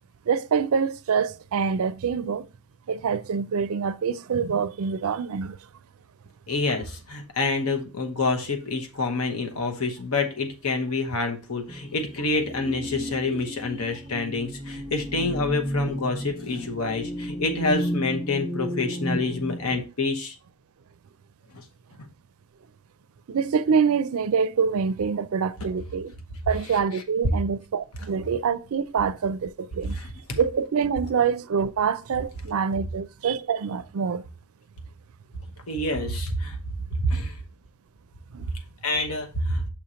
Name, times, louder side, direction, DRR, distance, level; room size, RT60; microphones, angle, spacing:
voice 1, 0.3-2.5 2.9-5.6 23.3-26.1 26.5-30.0 30.4-34.2 38.3-38.5, right 6 dB, 70° right, 0.4 m, -25 dB
voice 2, 6.5-20.3 30.0-30.4 35.7-36.6 36.9-37.4 38.8-39.6, left 3 dB, 75° left, 1.0 m, -27 dB
sound 1, 11.7-19.8, equal, ahead, 0.5 m, -32 dB
7.3 x 2.9 x 4.9 m
head